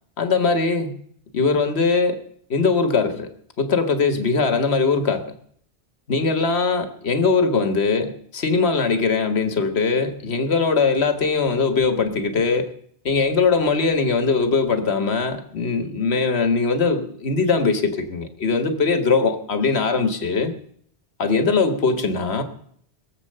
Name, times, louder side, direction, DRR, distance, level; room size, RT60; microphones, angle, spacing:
voice 1, 0.2-1.0 1.3-2.2 2.5-3.3 3.6-5.2 6.1-12.7 13.0-20.5 21.2-22.4, left 4 dB, 70° left, 8 dB, 1.6 m, -21 dB
21.5 x 7.6 x 6.6 m, 0.64 s
omnidirectional pair, 1.1 m